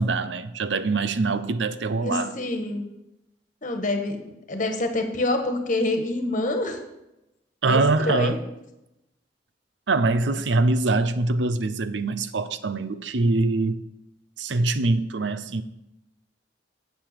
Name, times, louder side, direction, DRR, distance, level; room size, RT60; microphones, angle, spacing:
voice 1, 0.0-2.3 7.6-8.4 9.9-13.8 14.4-15.6, right 3 dB, 80° right, 0.6 m, -23 dB
voice 2, 2.0-2.9 3.6-4.2 4.5-6.8 7.7-7.8 8.1-8.4, left 2 dB, 45° left, 1.5 m, -26 dB
9.0 x 7.5 x 6.7 m
head